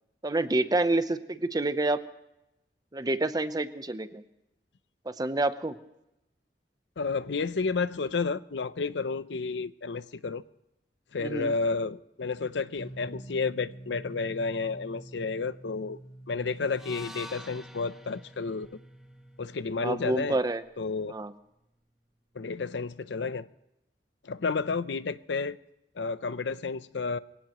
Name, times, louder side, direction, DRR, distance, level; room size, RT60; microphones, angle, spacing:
voice 1, 0.2-2.0 2.9-4.2 5.1-5.8 11.2-11.5 19.8-20.6 21.1-21.3, right 2 dB, 20° right, 12 dB, 0.8 m, -28 dB
voice 2, 7.0-10.4 11.1-16.0 16.3-18.7 19.4-20.4 20.8-21.1 22.3-23.5 24.2-25.6 26.0-27.2, left 4 dB, 90° left, 15 dB, 0.6 m, -31 dB
sound 1, 12.8-19.6, right 1 dB, 60° left, 4.1 m, -48 dB
sound 2, 16.7-20.9, left 1 dB, 5° right, 1.2 m, -49 dB
23.0 x 17.5 x 3.0 m, 0.87 s
head